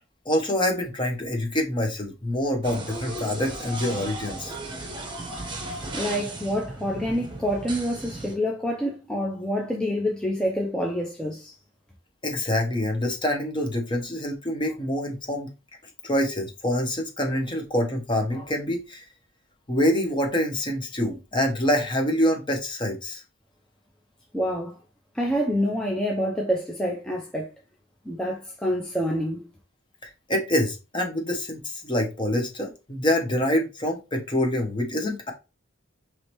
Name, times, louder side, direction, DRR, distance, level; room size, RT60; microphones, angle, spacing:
voice 1, 0.2-4.5 12.2-15.5 16.0-19.0 19.7-23.2 30.3-35.3, left 1 dB, 25° left, 0.9 m, -26 dB
sound 1, 2.6-8.3, right 2 dB, 25° right, 0.9 m, -36 dB
voice 2, 5.9-11.5 24.3-24.8 25.1-27.5 28.0-29.4, equal, 5° left, 0.5 m, -27 dB
4.9 x 3.1 x 2.9 m
head